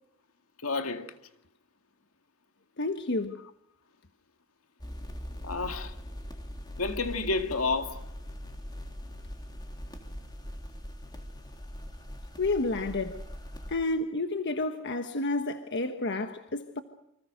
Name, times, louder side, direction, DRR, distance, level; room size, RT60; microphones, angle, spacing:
voice 1, 0.6-1.2 5.4-5.9 6.8-8.1, left 3 dB, 80° left, 2.2 m, -30 dB
voice 2, 2.8-3.4 12.4-13.2 13.7-16.8, left 2 dB, 55° left, 1.3 m, -30 dB
sound 1, 4.8-13.8, equal, 20° left, 3.3 m, -41 dB
29.0 x 25.5 x 6.6 m
head